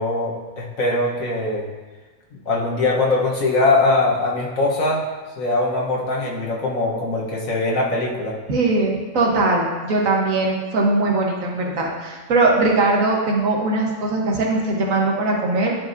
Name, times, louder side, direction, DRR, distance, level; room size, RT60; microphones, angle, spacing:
voice 1, 0.0-1.7 2.4-5.1 5.4-8.4, left 2 dB, 80° left, -3 dB, 1.6 m, -21 dB
voice 2, 8.5-15.7, right 2 dB, 80° right, -1 dB, 1.6 m, -20 dB
11.5 x 4.9 x 2.7 m, 1.3 s
omnidirectional pair, 1.4 m